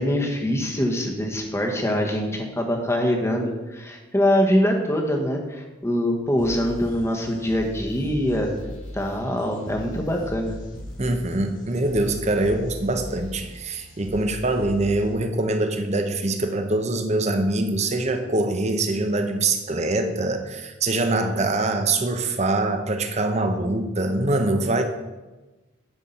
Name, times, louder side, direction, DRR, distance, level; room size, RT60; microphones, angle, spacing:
voice 1, 0.0-8.5 8.9-10.5, equal, 15° left, 2 dB, 1.2 m, -24 dB
sound 1, 6.4-15.4, equal, 75° left, 2.0 m, -39 dB
voice 2, 11.0-24.8, right 2 dB, 35° right, 7 dB, 0.8 m, -24 dB
10.5 x 4.7 x 5.7 m, 1.1 s
head